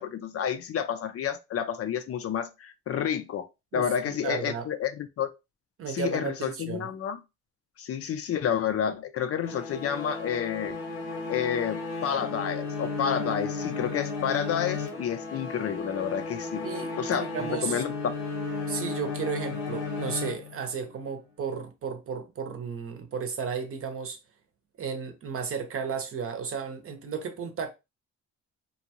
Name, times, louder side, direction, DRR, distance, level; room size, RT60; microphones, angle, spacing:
voice 1, 0.0-3.5 3.7-5.3 5.9-7.2 7.8-10.8 11.3-16.7 17.0-17.9, left 8 dB, 50° left, 0.5 m, -30 dB
voice 2, 3.7-4.7 5.8-6.9 16.6-17.8 18.7-24.2 24.8-27.7, right 6 dB, 45° right, 0.7 m, -34 dB
sound 1, 9.4-20.9, left 3 dB, 85° left, 1.1 m, -34 dB
2.6 x 2.2 x 2.8 m
cardioid pair, 90°, 30 cm